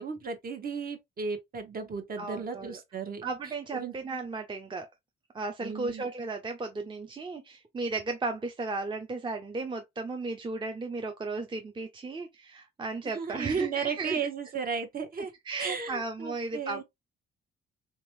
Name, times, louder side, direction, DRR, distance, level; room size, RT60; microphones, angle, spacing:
voice 1, 0.0-3.2 3.7-3.9 5.6-6.0 13.0-15.3 15.6-16.8, right 5 dB, 45° right, 1.2 m, -34 dB
voice 2, 2.2-2.8 3.2-4.9 5.3-14.2 15.4-16.8, right 3 dB, 25° right, 0.7 m, -35 dB
3.5 x 2.9 x 3.1 m
cardioid pair, 90°, 20 cm